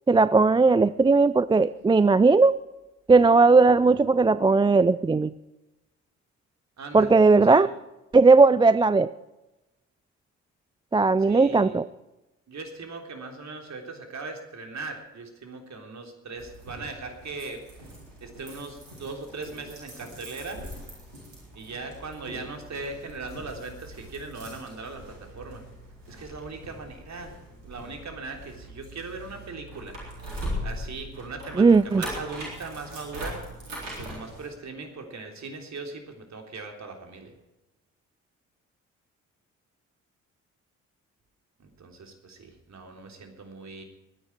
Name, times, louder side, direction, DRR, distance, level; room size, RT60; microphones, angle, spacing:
voice 1, 0.1-2.5 3.1-5.3 6.9-7.7 8.1-9.1 10.9-11.8 31.6-32.0, right 3 dB, 15° right, 17 dB, 0.4 m, -18 dB
voice 2, 6.8-7.7 11.3-11.8 12.5-17.6 18.2-20.6 21.6-25.6 26.1-27.3 27.6-30.0 30.6-33.5 34.0-37.3 41.6-43.8, right 3 dB, 45° right, 4 dB, 3.5 m, -39 dB
sound 1, 16.4-34.5, equal, 90° right, 4.1 m, -41 dB
21.0 x 9.9 x 4.6 m, 0.99 s
hypercardioid pair, 45°, 38 cm